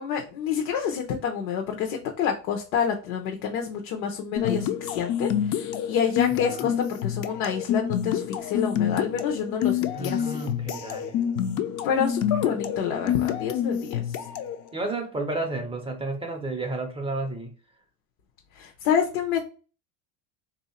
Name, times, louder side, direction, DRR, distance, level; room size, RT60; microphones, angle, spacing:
voice 1, 0.0-10.4 11.8-14.0 18.5-19.4, left 7 dB, 75° left, 0.9 m, -28 dB
sound 1, 4.4-14.6, left 9 dB, 45° left, 0.5 m, -28 dB
voice 2, 6.4-6.8 9.9-11.2 12.4-12.6 14.7-17.5, right 2 dB, 15° right, 0.4 m, -32 dB
3.1 x 2.7 x 4.3 m
cardioid pair, 140°, 44 cm